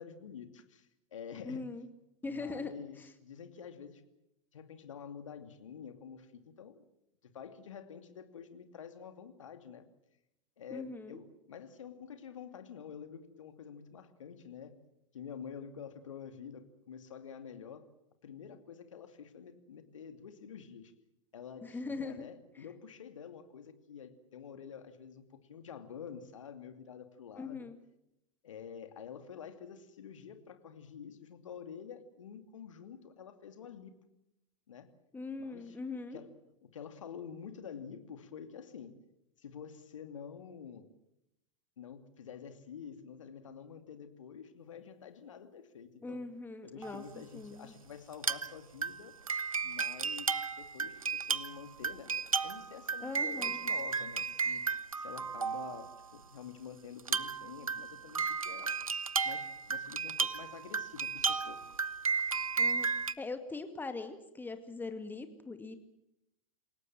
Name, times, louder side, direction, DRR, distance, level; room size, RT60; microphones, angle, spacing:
voice 1, 0.0-1.6 2.2-4.0 4.5-6.8 7.2-9.9 10.6-14.8 15.1-17.9 18.2-20.9 21.3-27.7 28.4-34.0 34.7-34.9 35.4-35.8 36.1-36.3 36.6-39.0 39.4-40.9 41.8-46.3 46.6-49.1 49.6-52.1 52.4-54.6 54.9-58.7 59.2-61.6, left 7 dB, 65° left, 8 dB, 2.6 m, -48 dB
voice 2, 1.5-1.9 2.2-3.1 10.7-11.2 21.6-22.3 22.6-22.7 27.4-27.7 35.1-36.2 46.0-47.7 53.0-53.6 62.6-62.9 63.2-65.7, left 3 dB, 10° left, 8 dB, 2.2 m, -41 dB
sound 1, 46.8-47.0 48.1-48.5 48.8-56.0 57.0-63.1, right 5 dB, 85° right, 0.8 m, -34 dB
28.5 x 18.0 x 7.5 m, 0.84 s
figure-of-eight pair, 90°, 17 cm